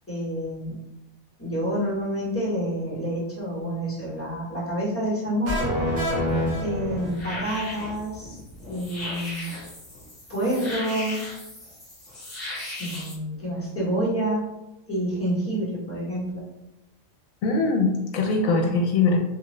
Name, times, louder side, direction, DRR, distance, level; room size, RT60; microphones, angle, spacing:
voice 1, 0.1-0.7 1.4-5.6 6.6-8.4 8.7-9.5 10.3-11.2 12.8-14.4 14.9-16.4, equal, 10° left, -7 dB, 1.1 m, -28 dB
sound 1, 5.4-7.4, equal, 80° right, 1.6 m, -26 dB
sound 2, 6.3-13.1, left 1 dB, 35° left, 1.3 m, -37 dB
voice 2, 17.4-19.2, left 3 dB, 75° left, 2 dB, 1.1 m, -22 dB
3.3 x 2.3 x 3.1 m, 0.92 s
omnidirectional pair, 1.4 m